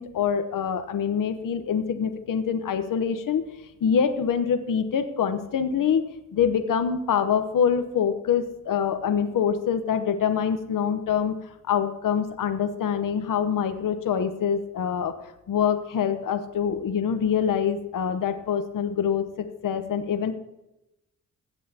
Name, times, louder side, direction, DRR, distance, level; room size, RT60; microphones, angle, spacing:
voice 1, 0.0-3.4 3.8-6.0 6.3-11.4 11.7-15.1 15.5-20.3, left 7 dB, 65° left, 8 dB, 1.0 m, -25 dB
16.5 x 7.4 x 2.8 m, 0.90 s
cardioid pair, 70°, 35 cm